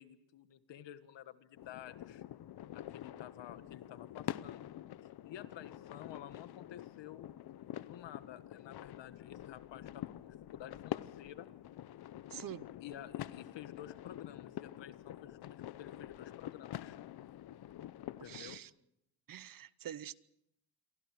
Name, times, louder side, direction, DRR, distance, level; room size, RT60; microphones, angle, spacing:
voice 1, 0.0-2.2 2.7-4.7 5.2-7.3 7.8-11.5 12.8-17.0 18.2-18.6, left 11 dB, 80° left, 1.6 m, -51 dB
sound 1, 1.6-18.6, left 12 dB, 60° left, 0.7 m, -46 dB
voice 2, 12.3-12.7 18.2-18.7 19.3-20.1, right 11 dB, 50° right, 0.8 m, -46 dB
28.0 x 24.0 x 4.8 m
cardioid pair, 130°, 43 cm